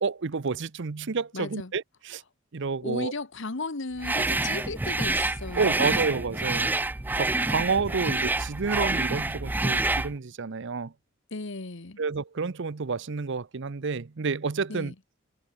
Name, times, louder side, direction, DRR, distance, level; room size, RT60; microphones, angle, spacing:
voice 1, 0.0-2.2 2.5-3.1 5.6-6.7 7.1-10.9 12.0-14.9, right 4 dB, 60° right, 0.7 m, -29 dB
voice 2, 1.3-1.7 2.8-6.1 11.3-12.0 14.7-14.9, left 3 dB, 65° left, 1.3 m, -35 dB
sound 1, 4.0-10.1, right 2 dB, 10° right, 0.3 m, -27 dB
head